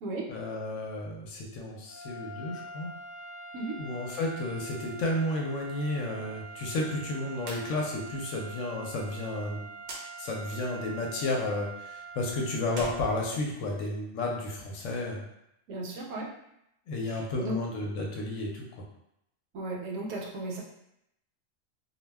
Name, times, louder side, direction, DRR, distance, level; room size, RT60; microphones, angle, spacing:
voice 1, 0.3-2.9 3.8-9.6 10.2-15.2 16.9-18.7, left 2 dB, 70° left, -1 dB, 0.9 m, -32 dB
sound 1, 1.8-13.3, right 4 dB, 45° left, 0.5 m, -45 dB
sound 2, 7.4-7.7 8.0-8.1 9.8-10.1 12.6-13.9, right 2 dB, 90° right, 0.4 m, -42 dB
voice 2, 15.7-16.3 17.1-17.6 19.5-20.6, right 2 dB, 75° right, -1 dB, 0.9 m, -35 dB
2.3 x 2.1 x 3.3 m, 0.81 s
omnidirectional pair, 1.4 m